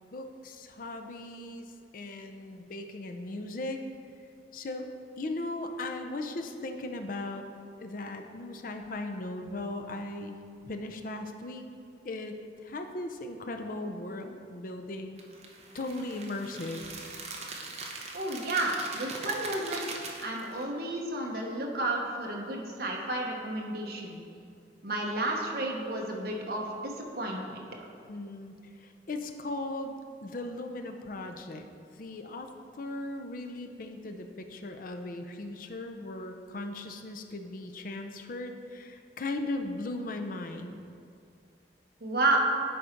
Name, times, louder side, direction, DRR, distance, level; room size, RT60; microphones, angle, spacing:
voice 1, 0.1-1.7 1.9-3.8 4.5-4.9 5.2-7.5 7.8-10.4 10.7-11.6 12.0-15.2 15.7-16.8 28.1-28.5 28.8-29.9 30.2-31.7 32.0-32.5 32.8-40.8, left 2 dB, 50° left, 5 dB, 0.5 m, -37 dB
sound 1, 15.2-20.6, right 3 dB, 35° right, 0.8 m, -41 dB
voice 2, 18.1-24.2 24.8-27.6 42.0-42.4, right 2 dB, 60° right, 0 dB, 1.0 m, -32 dB
10.0 x 3.9 x 4.5 m, 2.4 s
head